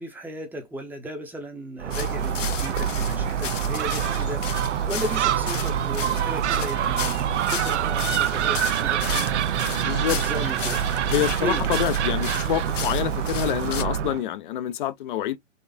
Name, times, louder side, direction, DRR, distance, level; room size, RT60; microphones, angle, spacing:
voice 1, 0.0-9.5 10.1-10.8 11.4-11.7, right 1 dB, 5° right, 0.8 m, -35 dB
Gull seagull, 1.8-14.2, right 9 dB, 65° right, 0.5 m, -25 dB
sound 1, 1.9-13.8, left 9 dB, 70° left, 0.8 m, -35 dB
voice 2, 9.6-10.2 11.1-15.4, left 11 dB, 40° left, 0.5 m, -27 dB
4.2 x 2.4 x 2.6 m
hypercardioid pair, 125°, 38 cm